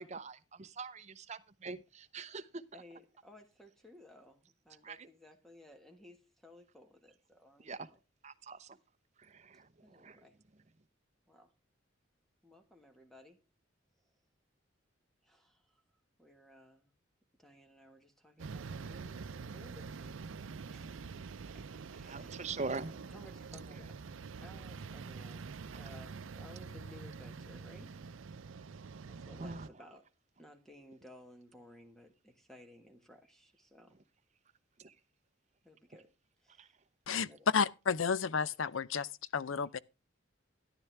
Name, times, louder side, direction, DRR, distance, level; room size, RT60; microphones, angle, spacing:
voice 1, 0.0-2.6 4.8-5.1 7.6-7.9 8.2-8.8 9.2-10.2 22.1-22.9 29.4-29.7 34.8-34.9 36.6-36.7, right 4 dB, 35° right, 0.8 m, -43 dB
voice 2, 2.7-8.0 9.5-10.4 11.3-11.5 12.4-13.4 15.2-15.8 16.2-16.9 17.4-21.2 21.5-22.6 22.9-24.1 24.4-27.9 29.1-30.1 30.4-34.0 35.6-36.1 36.4-36.8 37.3-37.5, left 1 dB, ahead, 1.5 m, -58 dB
sound 1, 18.4-29.7, right 5 dB, 85° right, 0.5 m, -46 dB
voice 3, 37.5-39.8, left 6 dB, 90° left, 0.6 m, -32 dB
13.0 x 11.0 x 3.4 m
head